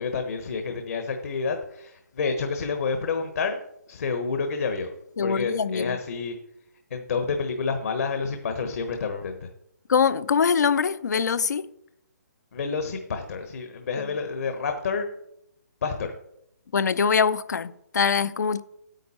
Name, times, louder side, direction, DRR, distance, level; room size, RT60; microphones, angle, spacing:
voice 1, 0.0-3.6 3.9-4.9 5.2-6.3 6.9-9.5 12.5-15.1 15.8-16.1, left 5 dB, 55° left, 1.1 m, -29 dB
voice 2, 5.2-6.0 9.9-11.6 16.7-18.6, left 6 dB, 75° left, 0.6 m, -23 dB
9.2 x 8.5 x 4.2 m
hypercardioid pair, 160°, 9 cm